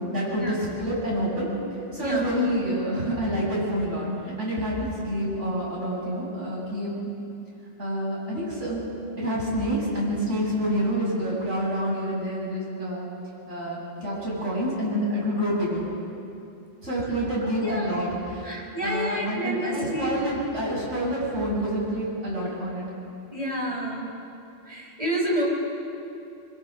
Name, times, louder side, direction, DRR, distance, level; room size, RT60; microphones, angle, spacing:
voice 1, 0.1-1.5 1.9-7.1 7.8-8.8 9.2-13.1 13.5-15.9 16.8-22.8, equal, 75° right, -5 dB, 7.5 m, -28 dB
voice 2, 17.6-17.9 18.4-20.2 23.3-24.1 24.6-25.4, equal, 30° right, -2 dB, 5.0 m, -29 dB
25.5 x 24.0 x 6.4 m, 2.7 s
omnidirectional pair, 1.3 m